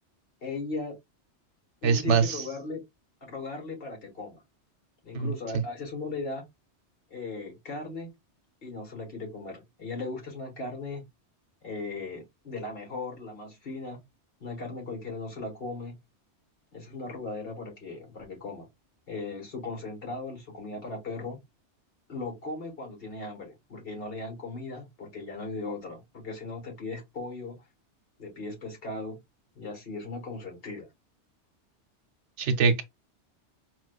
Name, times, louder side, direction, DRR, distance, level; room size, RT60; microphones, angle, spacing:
voice 1, 0.4-1.0 1.8-2.8 3.2-4.4 5.0-6.4 7.1-8.1 8.6-11.1 11.6-14.0 14.4-15.9 16.7-18.7 19.1-21.4 22.1-27.6 28.2-29.2 29.5-30.9, left 3 dB, 55° left, 1.5 m, -37 dB
voice 2, 1.8-2.4 5.1-5.6 32.4-32.8, right 5 dB, 80° right, 1.0 m, -24 dB
4.6 x 2.2 x 2.3 m
omnidirectional pair, 1.2 m